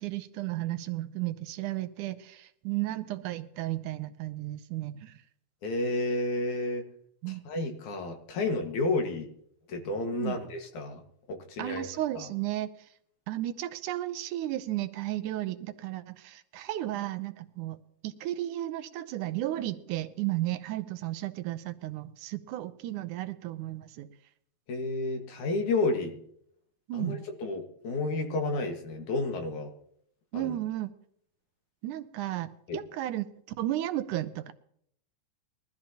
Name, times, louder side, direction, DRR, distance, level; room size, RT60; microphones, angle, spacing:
voice 1, 0.0-5.1 7.2-7.4 10.1-10.4 11.6-12.7 13.3-24.1 26.9-27.2 30.3-30.9 31.8-33.3 33.6-34.5, right 14 dB, 85° right, 11 dB, 2.3 m, -34 dB
voice 2, 5.6-6.8 7.4-9.3 9.7-11.0 11.3-11.9 12.1-12.3 24.7-26.2 26.9-29.7 30.3-30.6 32.7-32.8, left 2 dB, 75° left, 4 dB, 3.2 m, -31 dB
21.5 x 13.5 x 2.9 m, 0.68 s
omnidirectional pair, 3.5 m